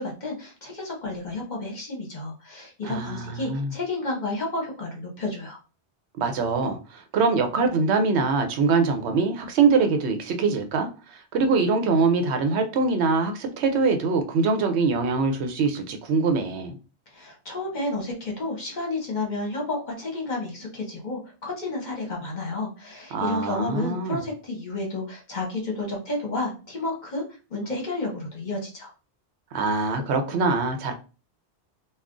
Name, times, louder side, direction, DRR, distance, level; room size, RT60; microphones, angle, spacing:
voice 1, 0.0-5.6 17.1-27.2 27.5-28.9, left 2 dB, 45° left, 0.9 m, -31 dB
voice 2, 2.8-3.7 6.2-16.7 23.1-24.2 29.5-30.9, right 4 dB, 80° right, 0.9 m, -23 dB
2.4 x 2.3 x 3.6 m
omnidirectional pair, 1.1 m